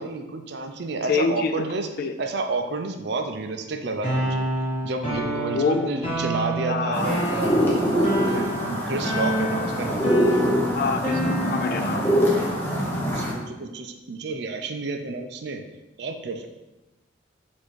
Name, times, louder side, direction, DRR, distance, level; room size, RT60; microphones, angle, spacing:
voice 1, 0.0-1.9 2.2-4.5 4.8-10.0 10.3-10.4 12.5-15.6 16.0-16.5, right 3 dB, 55° right, 5 dB, 0.4 m, -30 dB
voice 2, 1.0-1.6 2.0-2.1 5.5-5.9 6.7-7.1 10.7-12.1, left 4 dB, 50° left, 7 dB, 0.3 m, -26 dB
sound 1, 4.0-11.9, equal, 30° left, 1.4 m, -28 dB
sound 2, 6.9-13.3, equal, 10° left, 0.7 m, -24 dB
4.4 x 2.6 x 4.5 m, 1.0 s
head